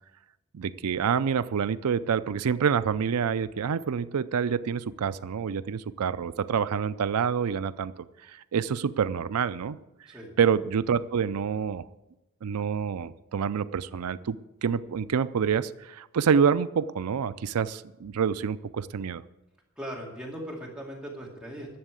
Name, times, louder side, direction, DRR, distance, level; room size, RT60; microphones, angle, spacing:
voice 1, 0.5-7.9 8.3-9.8 10.4-11.8 12.4-19.2, right 7 dB, 85° right, 15 dB, 0.4 m, -27 dB
voice 2, 19.8-21.8, equal, 5° right, -3 dB, 2.3 m, -39 dB
11.0 x 7.2 x 8.3 m, 0.97 s
head